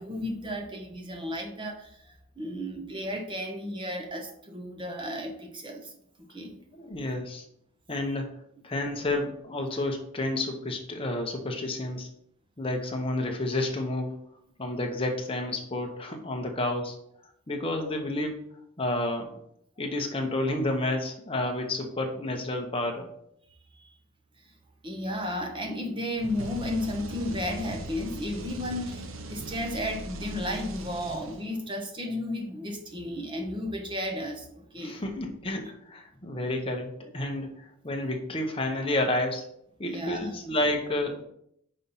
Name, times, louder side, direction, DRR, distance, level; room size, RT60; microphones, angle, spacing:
voice 1, 0.0-5.9 6.3-6.6 8.1-8.2 24.8-35.0 39.8-40.4, left 1 dB, 25° right, 3 dB, 0.9 m, -33 dB
voice 2, 6.8-7.4 7.9-8.3 8.6-12.1 12.6-14.2 14.6-17.0 17.5-18.4 18.8-19.4 19.8-23.1 34.8-39.5 39.8-41.2, left 1 dB, 25° left, 3 dB, 0.9 m, -30 dB
sound 1, 26.2-31.7, right 2 dB, 65° right, 0.8 m, -39 dB
5.4 x 4.2 x 5.5 m, 0.72 s
head